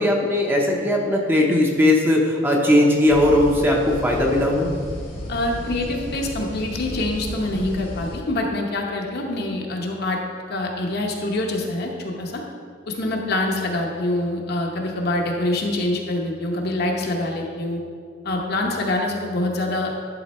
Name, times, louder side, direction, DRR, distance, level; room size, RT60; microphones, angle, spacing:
voice 1, 0.0-4.7, left 1 dB, 10° right, -1 dB, 0.8 m, -18 dB
sound 1, 3.1-8.2, equal, 70° left, 1.6 m, -33 dB
voice 2, 5.3-10.2 10.5-12.4 12.9-17.8 18.2-19.9, left 2 dB, 55° left, 0 dB, 1.0 m, -25 dB
11.0 x 3.9 x 4.3 m, 2.1 s
head